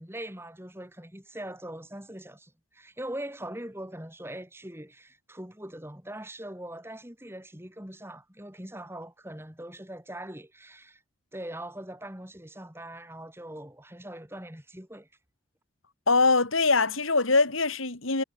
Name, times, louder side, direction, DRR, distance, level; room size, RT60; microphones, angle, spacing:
voice 1, 0.0-11.0 11.3-15.1, right 1 dB, 10° right, 3.7 m, -41 dB
voice 2, 16.1-18.2, left 3 dB, 90° left, 3.8 m, -23 dB
head